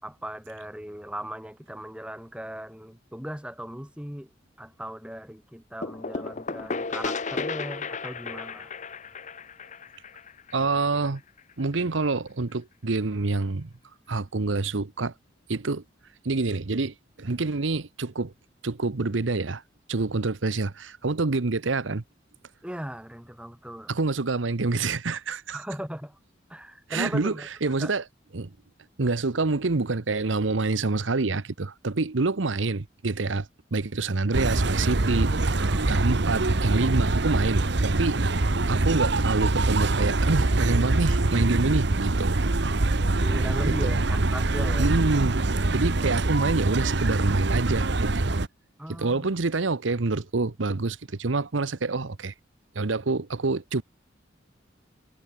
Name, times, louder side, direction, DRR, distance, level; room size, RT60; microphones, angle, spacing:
voice 1, 0.0-4.3 4.6-8.7 22.6-23.9 25.5-26.2 26.5-27.9 35.6-36.1 43.2-44.9 46.0-46.2 48.8-49.3, equal, 5° right, 4.6 m, -38 dB
sound 1, 5.8-11.4, left 4 dB, 40° left, 1.1 m, -34 dB
voice 2, 10.5-11.2 11.6-13.7 14.1-15.1 15.5-15.8 16.2-18.3 18.6-19.6 19.9-22.0 23.9-25.6 26.9-27.3 27.6-28.0 28.3-28.5 29.0-35.6 35.9-38.2 38.7-42.5 43.8-43.9 44.8-45.4 45.7-48.3 48.9-52.3 52.7-53.8, right 3 dB, 80° right, 0.9 m, -27 dB
sound 2, 34.3-48.5, right 2 dB, 65° right, 1.2 m, -24 dB
head